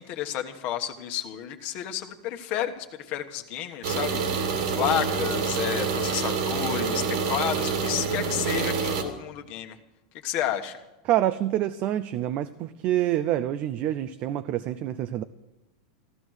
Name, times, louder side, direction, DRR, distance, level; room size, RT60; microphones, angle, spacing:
voice 1, 0.0-4.5 4.7-9.8 10.2-10.8, left 11 dB, 40° left, 6 dB, 1.3 m, -31 dB
sound 1, 3.8-9.0, right 5 dB, 70° right, 2.4 m, -27 dB
voice 2, 11.1-15.2, right 12 dB, 40° right, 12 dB, 0.5 m, -27 dB
15.0 x 12.5 x 6.4 m, 1.0 s
supercardioid pair, 145°, 4 cm